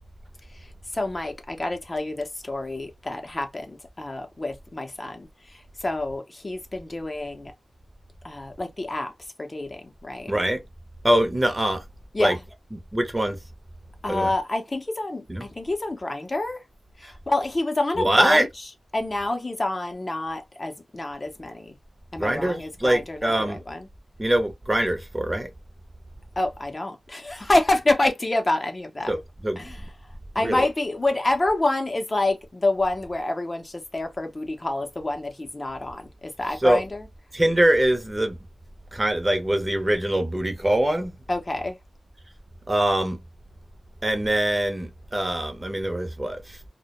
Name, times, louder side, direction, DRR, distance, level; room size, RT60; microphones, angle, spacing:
voice 1, 0.9-5.3 5.8-7.5 8.2-9.1 9.4-10.3 12.1-12.4 14.0-16.6 17.0-18.5 18.9-21.7 22.1-23.9 26.4-29.1 29.6-29.8 30.4-37.0 41.3-41.8, left 2 dB, 35° left, 0.5 m, -27 dB
voice 2, 10.3-10.6 11.0-11.8 12.2-12.4 12.7-13.4 14.1-14.3 15.3-15.4 17.0-17.1 18.0-18.5 22.2-23.6 24.2-25.5 29.1-29.6 30.4-30.7 36.6-36.8 37.3-38.4 38.9-41.1 42.7-43.2 44.0-46.6, right 1 dB, 25° right, 0.7 m, -23 dB
2.1 x 2.1 x 2.8 m
cardioid pair, 45°, 0 cm